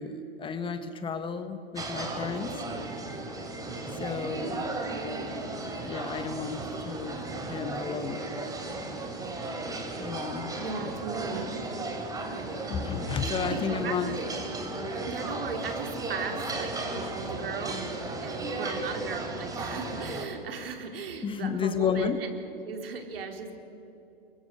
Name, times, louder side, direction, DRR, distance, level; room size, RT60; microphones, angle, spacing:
voice 1, 0.0-2.6 3.9-4.7 5.8-7.2 7.5-8.3 10.0-10.9 12.7-14.1 21.2-22.2, left 6 dB, 15° left, 10 dB, 1.2 m, -32 dB
sound 1, 1.8-20.3, right 2 dB, 10° right, 3.4 m, -35 dB
voice 2, 10.6-11.5 13.4-14.2 15.1-22.3 22.7-23.6, right 5 dB, 75° right, 4 dB, 4.0 m, -37 dB
28.0 x 23.0 x 6.8 m, 2.9 s
hypercardioid pair, 125°, 29 cm